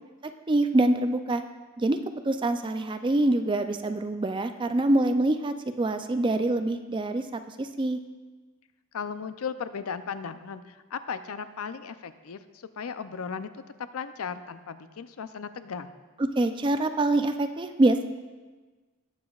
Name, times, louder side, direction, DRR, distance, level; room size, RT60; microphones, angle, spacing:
voice 1, 0.5-1.4 1.8-2.0 2.2-8.0 16.2-18.1, right 2 dB, 20° right, 8 dB, 0.4 m, -25 dB
voice 2, 8.9-12.4 12.8-13.6 13.9-15.9, left 6 dB, 80° left, 11 dB, 0.5 m, -36 dB
18.5 x 7.2 x 2.4 m, 1.3 s
head